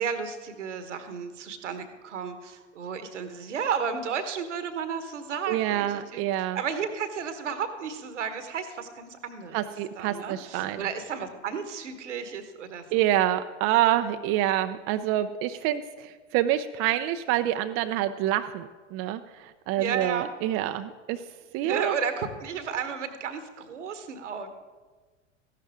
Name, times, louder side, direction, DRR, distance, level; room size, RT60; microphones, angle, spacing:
voice 1, 0.0-9.6 9.9-12.8 19.8-20.3 21.6-24.5, right 7 dB, 75° right, 9 dB, 1.3 m, -33 dB
voice 2, 5.5-6.6 9.5-10.8 12.9-21.2 21.5-21.9, right 13 dB, 40° right, 9 dB, 0.5 m, -27 dB
14.5 x 11.5 x 3.6 m, 1.3 s
figure-of-eight pair, 80°, 36 cm